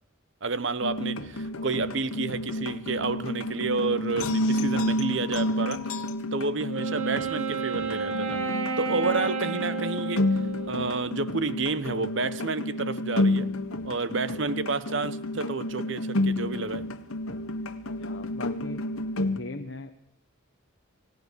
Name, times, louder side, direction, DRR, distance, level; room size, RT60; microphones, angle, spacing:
voice 1, 0.4-5.9 6.3-10.3 10.7-13.5 13.8-16.9, right 3 dB, 60° right, 1.0 m, -30 dB
sound 1, 0.8-19.4, left 1 dB, 90° left, 1.7 m, -30 dB
Wind instrument woodwind instrument, 6.7-11.2, right 5 dB, 80° right, 2.3 m, -32 dB
voice 2, 18.0-18.8 19.3-19.9, left 2 dB, 60° left, 1.3 m, -39 dB
28.0 x 18.0 x 6.8 m
head